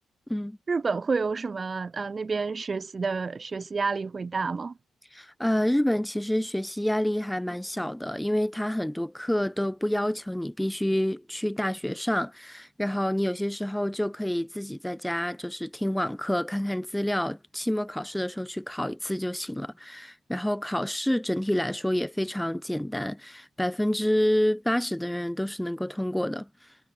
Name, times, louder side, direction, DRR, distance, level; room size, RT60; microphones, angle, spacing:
voice 1, 0.7-4.8, right 4 dB, 40° right, 0.7 m, -29 dB
voice 2, 5.1-26.8, left 1 dB, 5° left, 1.0 m, -28 dB
hypercardioid pair, 45°, 0 cm